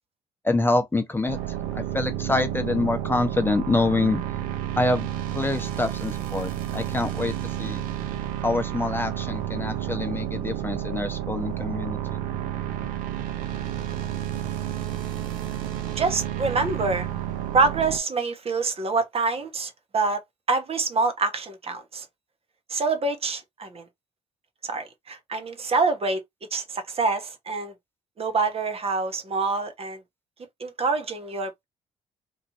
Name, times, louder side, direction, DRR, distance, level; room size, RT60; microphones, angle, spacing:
voice 1, 0.4-1.4 1.7-4.2 4.8-7.8 8.4-12.0, left 2 dB, 15° left, 0.8 m, -26 dB
Dark Analog Drone, 1.3-18.0, right 11 dB, 75° right, 0.5 m, -31 dB
voice 2, 16.0-17.1 17.5-20.2 20.5-22.0 22.7-23.8 24.6-26.2 26.5-27.7 28.2-30.0 30.6-31.6, right 3 dB, 45° right, 1.1 m, -26 dB
3.1 x 2.5 x 2.5 m
hypercardioid pair, 45°, 14 cm